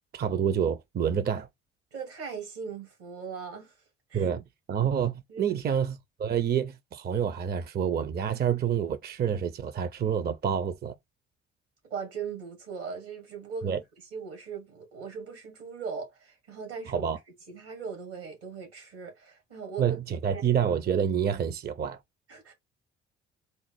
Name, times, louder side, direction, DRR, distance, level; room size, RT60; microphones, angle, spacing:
voice 1, 0.1-1.5 4.1-10.9 13.6-13.8 16.9-17.2 19.8-22.0, right 8 dB, 30° right, 0.5 m, -28 dB
voice 2, 1.9-3.7 4.1-4.3 5.3-5.6 11.9-13.8 14.1-17.1 17.5-20.0 20.3-20.4 22.3-22.5, right 6 dB, 80° right, 2.0 m, -39 dB
4.1 x 2.0 x 4.5 m
figure-of-eight pair, 50°, 31 cm